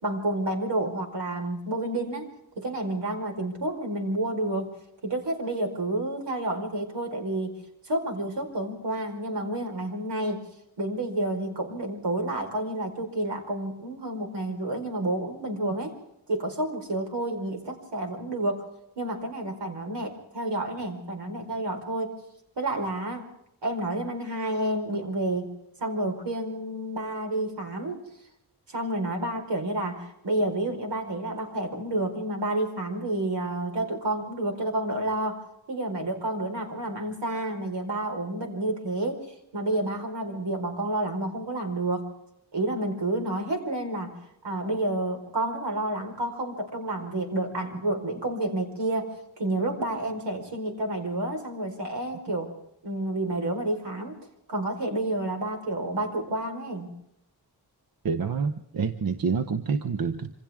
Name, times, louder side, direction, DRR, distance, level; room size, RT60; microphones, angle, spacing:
voice 1, 0.0-2.3 2.6-4.7 5.0-7.6 7.9-10.4 10.8-16.0 16.3-18.6 19.0-22.2 22.6-23.3 23.6-25.5 25.8-28.0 28.7-35.4 35.7-42.1 42.5-44.1 44.4-52.5 52.8-54.2 54.5-56.9, right 1 dB, 80° right, 4 dB, 4.8 m, -30 dB
voice 2, 58.0-60.3, right 5 dB, 55° right, 7 dB, 1.1 m, -27 dB
27.0 x 26.0 x 3.7 m, 0.81 s
wide cardioid pair, 160°, 41 cm